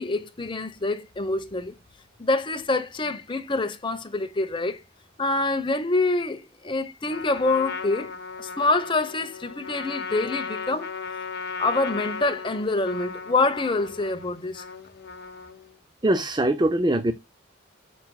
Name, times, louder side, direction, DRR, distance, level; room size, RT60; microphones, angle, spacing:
voice 1, 0.0-1.7 2.2-4.8 5.2-8.1 8.4-10.9 11.6-14.6, left 2 dB, 25° left, 1.0 m, -26 dB
Trumpet, 7.1-15.8, left 5 dB, 55° left, 1.1 m, -36 dB
voice 2, 16.0-17.1, right 1 dB, 20° right, 0.5 m, -22 dB
8.6 x 7.4 x 2.3 m
head